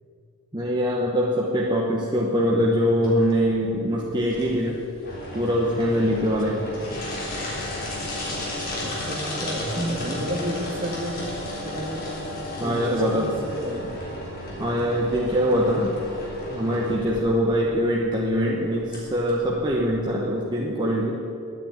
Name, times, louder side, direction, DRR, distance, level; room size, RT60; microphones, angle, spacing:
voice 1, 0.5-4.8 5.3-6.6 9.8-9.9 10.4-10.5 12.6-13.3 14.6-15.9 16.5-21.1, equal, 20° right, -3 dB, 1.1 m, -23 dB
sound 1, 3.0-20.1, left 1 dB, 40° left, 3.5 m, -34 dB
voice 2, 8.8-12.0 12.6-13.9 17.5-17.6, right 1 dB, 40° right, 1 dB, 1.9 m, -33 dB
11.0 x 9.2 x 8.9 m, 2.7 s
head